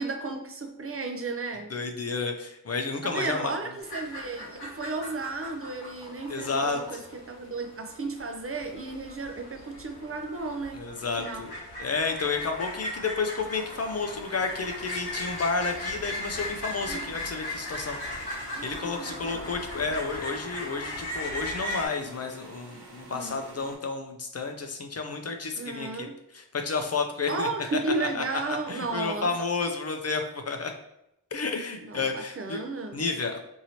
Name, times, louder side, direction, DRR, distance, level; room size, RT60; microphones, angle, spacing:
voice 1, 0.0-1.7 3.0-10.8 11.2-11.5 16.9-17.1 18.5-19.9 23.1-23.4 25.6-26.2 27.3-29.3 31.8-33.0, right 3 dB, 35° right, 4 dB, 0.4 m, -34 dB
voice 2, 1.7-3.5 6.3-6.8 10.7-11.5 11.8-18.0 18.6-26.1 26.3-27.5 27.9-28.4 28.7-30.7 31.3-32.6 32.9-33.4, left 4 dB, 40° left, 5 dB, 0.4 m, -31 dB
sound 1, 3.8-21.9, left 1 dB, 70° left, 0.9 m, -38 dB
sound 2, 13.4-23.8, right 2 dB, 85° right, 0.8 m, -49 dB
2.8 x 2.7 x 2.8 m, 0.83 s
cardioid pair, 55°, 38 cm